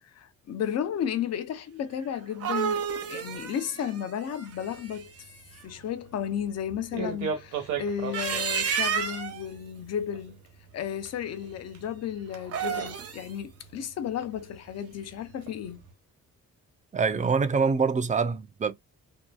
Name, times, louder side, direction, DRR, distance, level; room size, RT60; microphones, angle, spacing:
voice 1, 0.1-5.1 5.6-10.4 10.7-15.8, left 9 dB, 60° left, 0.6 m, -33 dB
sound 1, 2.1-5.2 7.9-9.4 12.4-13.3, right 7 dB, 50° right, 0.8 m, -31 dB
sound 2, 4.5-15.9, right 6 dB, 75° right, 1.1 m, -41 dB
voice 2, 16.9-18.7, right 5 dB, 25° right, 0.5 m, -25 dB
2.8 x 2.2 x 2.3 m
cardioid pair, 90°, 30 cm